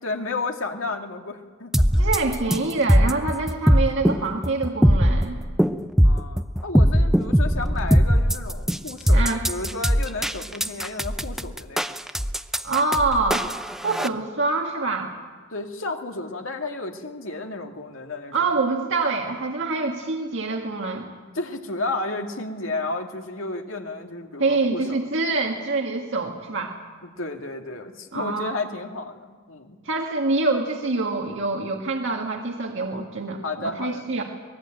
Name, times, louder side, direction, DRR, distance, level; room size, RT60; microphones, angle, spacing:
voice 1, 0.0-2.1 6.0-11.8 13.8-14.1 15.5-18.5 21.3-25.0 27.2-29.8 33.4-34.1, left 2 dB, 75° left, 4 dB, 2.3 m, -32 dB
sound 1, 1.7-14.1, equal, ahead, 0.6 m, -20 dB
voice 2, 2.0-5.4 9.1-9.4 12.6-13.5 13.8-15.1 18.3-21.1 24.4-26.7 28.1-28.6 29.8-34.2, right 3 dB, 65° right, 2 dB, 1.9 m, -25 dB
23.5 x 19.5 x 9.0 m, 1.4 s
head